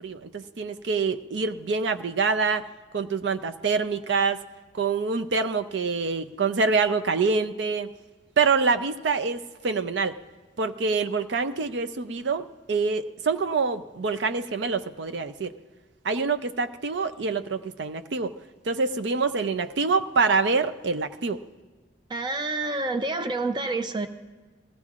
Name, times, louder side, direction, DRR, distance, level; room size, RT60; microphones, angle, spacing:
voice 1, 0.0-2.7 2.9-4.4 4.7-7.9 8.4-10.2 10.6-15.5 16.0-18.3 18.7-21.4, right 4 dB, 70° right, 10 dB, 0.5 m, -26 dB
voice 2, 22.1-24.1, right 2 dB, 25° right, 8 dB, 0.6 m, -28 dB
20.0 x 15.5 x 2.5 m, 1.3 s
head